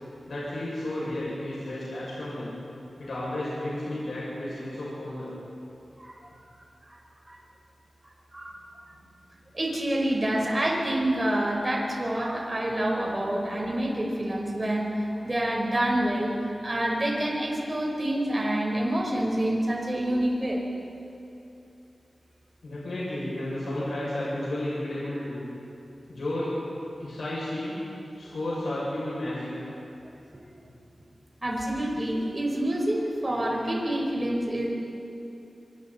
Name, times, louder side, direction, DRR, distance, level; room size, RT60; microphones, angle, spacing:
voice 1, 0.3-2.5 3.0-5.3 22.6-25.4 26.1-26.5 27.0-27.7 28.2-29.7, left 1 dB, 75° left, -8 dB, 6.8 m, -32 dB
voice 2, 9.5-16.4 16.6-20.6 30.3-30.4 31.4-34.7, right 1 dB, 25° right, -1 dB, 4.7 m, -27 dB
26.0 x 25.0 x 4.3 m, 2.7 s
wide cardioid pair, 110°, 0 cm